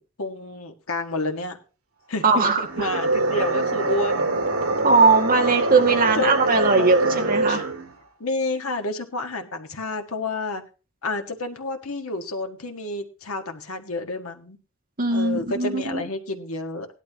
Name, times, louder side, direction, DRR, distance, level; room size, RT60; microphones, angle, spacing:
voice 1, 0.0-1.6 2.1-4.3 5.5-5.6 6.2-7.6 8.2-10.6 11.0-14.6 15.1-16.9, left 2 dB, 80° left, 5 dB, 1.6 m, -30 dB
voice 2, 2.2-2.9 4.8-7.6 15.0-16.0, right 4 dB, 45° right, 1 dB, 2.1 m, -20 dB
sound 1, 2.6-7.9, right 2 dB, 85° right, 2.2 m, -24 dB
17.0 x 11.5 x 2.9 m, 0.33 s
head